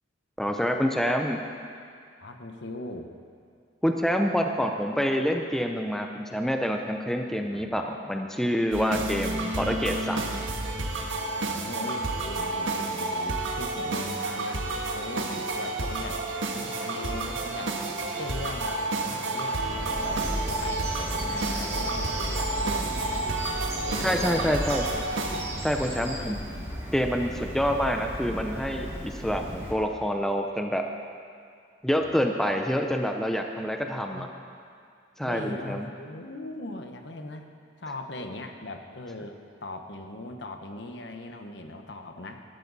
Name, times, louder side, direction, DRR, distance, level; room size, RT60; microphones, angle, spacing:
voice 1, 0.4-1.4 3.8-10.4 24.0-24.8 25.6-26.4 26.9-30.8 31.8-34.3 35.2-35.9, equal, ahead, 3 dB, 0.6 m, -27 dB
voice 2, 2.2-3.1 7.5-7.8 11.4-16.2 16.5-17.8 18.2-23.2 23.8-25.0 25.9-26.5 29.0-29.7 32.0-32.2 34.0-34.3 35.2-37.5 37.8-42.4, left 2 dB, 65° left, 5 dB, 1.1 m, -40 dB
sound 1, 8.7-25.4, right 2 dB, 85° right, 1.5 m, -30 dB
sound 2, 9.7-26.0, equal, 25° left, 4.8 m, -49 dB
Bird vocalization bird call bird song, 19.7-29.7, equal, 15° right, 2.1 m, -35 dB
20.0 x 13.0 x 4.1 m, 2.3 s
head